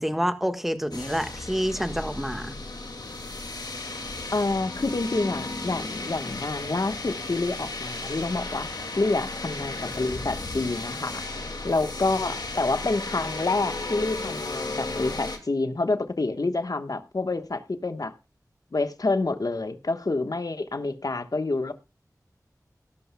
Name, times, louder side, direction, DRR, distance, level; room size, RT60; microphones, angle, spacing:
voice 1, 0.0-2.5, equal, 5° right, 1.4 m, -28 dB
sound 1, 0.9-15.4, left 3 dB, 90° left, 2.1 m, -34 dB
voice 2, 4.3-11.2 11.6-18.1 18.7-21.7, left 3 dB, 65° left, 1.2 m, -28 dB
17.0 x 12.5 x 2.2 m
wide cardioid pair, 55°, 7 cm